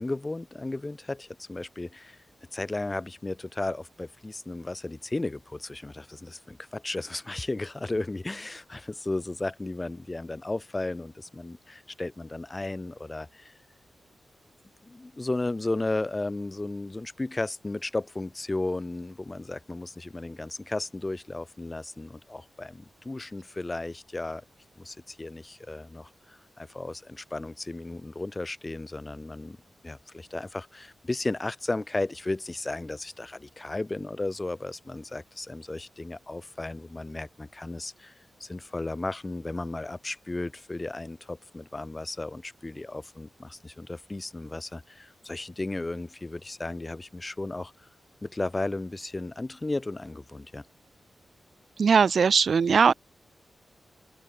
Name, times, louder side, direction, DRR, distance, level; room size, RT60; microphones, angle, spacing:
voice 1, 0.0-2.2 2.5-13.5 14.8-24.4 24.8-29.6 29.8-38.1 38.4-47.9 48.2-50.6, left 2 dB, 20° left, 5.3 m, -34 dB
voice 2, 51.8-52.9, right 6 dB, 60° right, 0.4 m, -20 dB
open air
wide cardioid pair, 130°, 0 cm